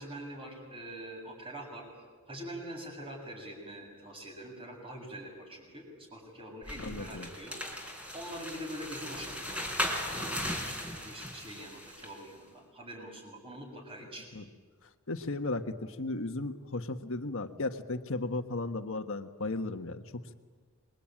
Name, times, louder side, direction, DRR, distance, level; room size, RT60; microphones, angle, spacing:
voice 1, 0.0-1.9 2.3-7.6 8.1-9.7 10.2-14.3, right 1 dB, 25° right, 1 dB, 7.3 m, -44 dB
sound 1, 6.6-12.2, equal, 5° right, 3.9 m, -37 dB
voice 2, 6.8-7.3 14.3-14.4 15.1-20.3, left 2 dB, 65° left, 7 dB, 1.5 m, -35 dB
27.0 x 23.0 x 8.9 m, 1.5 s
head